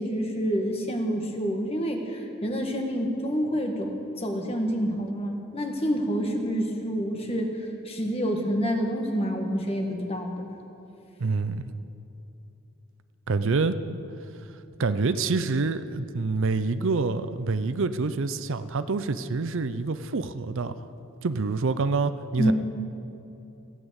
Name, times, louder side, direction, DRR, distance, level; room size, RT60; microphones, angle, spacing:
voice 1, 0.0-7.5 7.8-10.5 22.4-22.5, equal, 30° left, 3 dB, 1.5 m, -28 dB
voice 2, 11.2-11.6 13.3-13.8 14.8-20.9 21.2-22.5, right 4 dB, 60° right, 12 dB, 0.5 m, -26 dB
15.5 x 9.2 x 8.1 m, 2.9 s
head